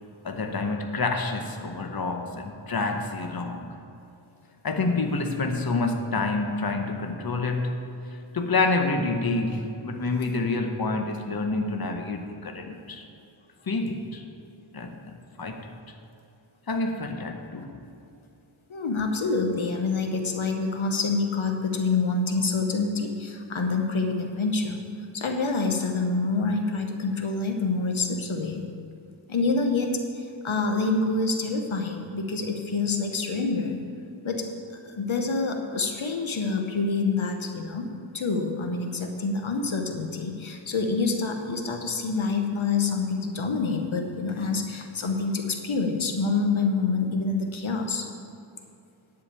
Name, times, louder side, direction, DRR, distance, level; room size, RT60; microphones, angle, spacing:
voice 1, 0.2-3.7 4.6-7.8 8.3-13.0 13.7-14.2 14.7-15.7 16.7-17.8, left 3 dB, 50° left, 4 dB, 1.0 m, -28 dB
voice 2, 18.7-24.8 25.1-28.6 29.3-33.8 34.2-34.5 34.8-48.1, left 3 dB, 80° left, 4 dB, 1.0 m, -27 dB
10.5 x 5.0 x 8.2 m, 2.7 s
wide cardioid pair, 60°, 47 cm